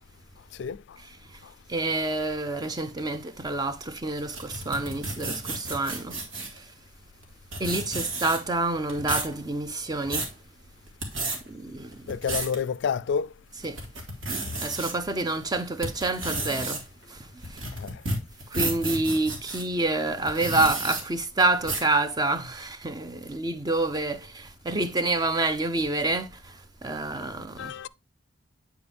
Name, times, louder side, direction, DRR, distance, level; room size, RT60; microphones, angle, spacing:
voice 1, 1.0-1.4 1.7-6.7 7.6-10.3 11.5-12.1 13.6-13.8 14.6-17.7 18.5-27.7, right 2 dB, 20° right, 0.5 m, -28 dB
sound 1, 4.2-6.6 7.2-7.3 7.5-8.6 8.9-9.3 9.8-10.3 10.9-11.4 11.9-12.6 13.1-13.2 13.6-14.9 15.4-19.6 20.2-21.0 21.6-21.9, right 2 dB, 80° right, 2.1 m, -32 dB
voice 2, 12.1-13.3 17.8-17.9 27.6-27.9, left 6 dB, 60° left, 0.3 m, -28 dB
8.7 x 4.5 x 3.4 m
head